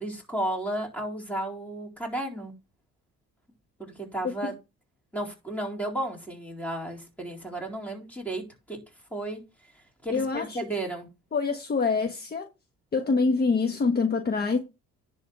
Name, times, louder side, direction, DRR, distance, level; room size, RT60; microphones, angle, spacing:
voice 1, 0.0-2.5 3.8-4.5 5.1-8.8 9.1-9.4 10.0-11.1, right 1 dB, 5° left, 4.0 m, -33 dB
voice 2, 10.1-10.7 11.3-12.5 12.9-14.6, left 4 dB, 30° left, 1.3 m, -25 dB
10.5 x 3.9 x 6.6 m
cardioid pair, 95°, 30 cm